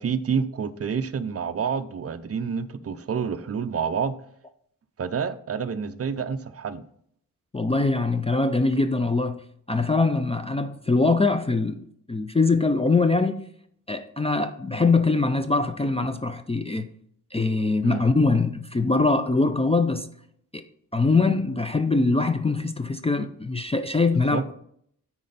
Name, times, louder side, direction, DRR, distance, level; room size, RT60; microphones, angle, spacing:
voice 1, 0.0-4.2 5.0-6.9 17.8-18.1 24.3-24.4, right 6 dB, 45° right, 0.5 m, -28 dB
voice 2, 7.5-13.5 13.9-16.9 17.3-20.1 20.5-20.6 20.9-24.5, left 3 dB, 20° left, 0.3 m, -23 dB
9.4 x 4.2 x 3.9 m
wide cardioid pair, 150°, 34 cm